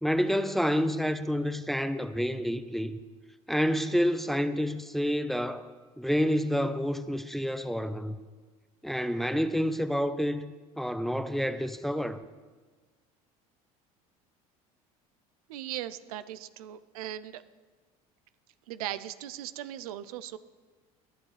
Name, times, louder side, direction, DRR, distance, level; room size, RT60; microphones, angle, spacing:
voice 1, 0.0-3.0 3.5-5.7 6.0-8.2 8.8-12.2, equal, ahead, 0.7 m, -28 dB
voice 2, 15.5-17.4 18.7-20.4, right 12 dB, 85° right, 0.5 m, -38 dB
20.0 x 10.5 x 3.3 m
hypercardioid pair, 80°, 19 cm